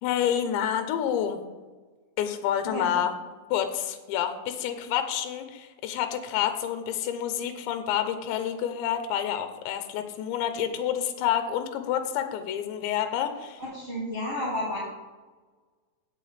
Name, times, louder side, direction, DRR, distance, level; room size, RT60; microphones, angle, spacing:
voice 1, 0.0-1.4 2.2-3.1 3.5-13.6, left 10 dB, 85° left, 8 dB, 3.1 m, -28 dB
voice 2, 2.6-3.0 13.7-14.8, left 1 dB, 20° right, -8 dB, 1.9 m, -31 dB
16.0 x 7.3 x 3.4 m, 1.3 s
omnidirectional pair, 5.1 m